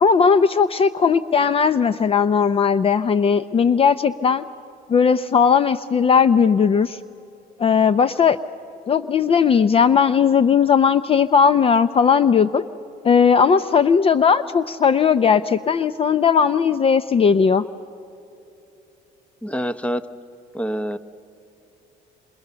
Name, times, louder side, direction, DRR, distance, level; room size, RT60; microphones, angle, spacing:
voice 1, 0.0-4.4 4.9-7.0 7.6-8.4 8.9-12.6 13.0-17.6, left 6 dB, 35° left, 15 dB, 0.6 m, -17 dB
voice 2, 19.4-20.0 20.5-21.0, equal, 5° left, 14 dB, 0.9 m, -25 dB
28.0 x 27.0 x 6.9 m, 3.0 s
cardioid pair, 110°, 17 cm